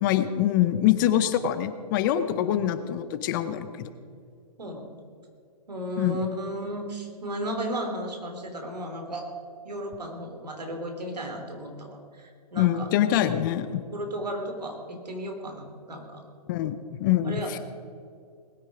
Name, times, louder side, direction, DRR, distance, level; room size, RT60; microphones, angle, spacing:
voice 1, 0.0-3.9 6.0-6.2 12.6-13.8 16.5-17.4, left 12 dB, 30° left, 12 dB, 0.7 m, -24 dB
voice 2, 2.3-2.6 4.6-5.0 5.7-9.3 9.6-12.9 13.9-16.2 17.2-17.6, equal, 80° right, 3 dB, 3.4 m, -34 dB
20.0 x 9.6 x 5.0 m, 2.3 s
hypercardioid pair, 135°, 21 cm